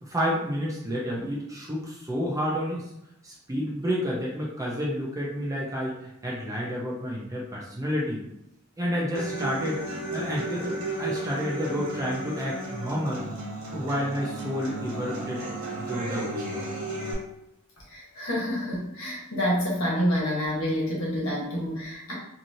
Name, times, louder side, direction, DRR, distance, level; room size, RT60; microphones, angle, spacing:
voice 1, 0.0-2.9 3.2-8.2 8.8-13.3 13.7-15.4 15.9-16.6, equal, 15° right, -4 dB, 0.6 m, -30 dB
Human voice / Acoustic guitar, 9.1-17.1, right 2 dB, 70° right, 1.1 m, -34 dB
voice 2, 17.9-22.1, equal, 65° left, -5 dB, 1.2 m, -28 dB
3.0 x 2.7 x 2.7 m, 0.83 s
head